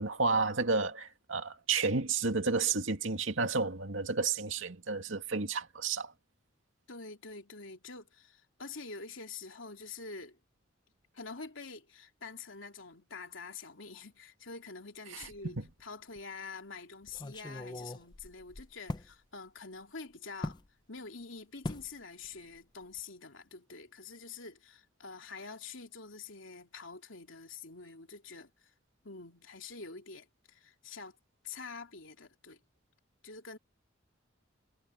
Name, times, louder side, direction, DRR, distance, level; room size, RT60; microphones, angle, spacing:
voice 1, 0.0-6.1 15.1-15.6, right 4 dB, 75° right, 2.2 m, -31 dB
voice 2, 6.9-10.4 11.1-20.6 20.9-28.7 29.0-31.2 31.4-32.6 33.2-33.6, left 4 dB, 75° left, 3.2 m, -46 dB
sound 1, 15.2-15.8 16.2-16.3 17.1-19.1 20.4-20.7 21.6-21.9 22.2-22.6 22.8-23.0, left 1 dB, 20° left, 0.6 m, -41 dB
head